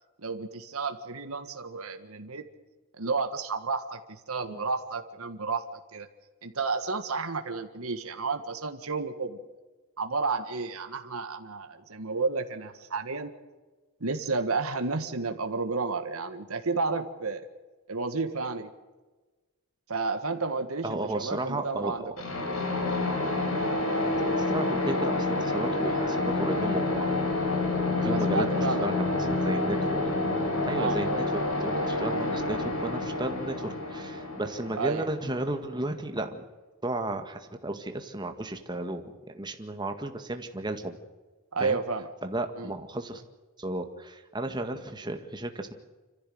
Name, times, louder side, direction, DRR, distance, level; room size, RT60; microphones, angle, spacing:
voice 1, 0.2-2.4 3.0-5.6 5.9-6.1 6.4-9.4 10.0-13.3 14.0-17.4 17.9-18.7 19.9-22.0 28.0-28.9 30.7-31.0 34.7-35.0 41.5-42.1 42.6-42.7, right 4 dB, 80° right, 6 dB, 1.7 m, -31 dB
voice 2, 20.8-22.1 23.9-27.1 27.9-29.9 30.7-36.5 36.8-41.0 41.6-41.8 42.2-43.2 43.6-45.7, right 1 dB, 20° right, 6 dB, 1.9 m, -34 dB
sound 1, 22.2-35.8, left 2 dB, 75° left, 5.1 m, -28 dB
27.0 x 14.5 x 7.9 m, 1.3 s
head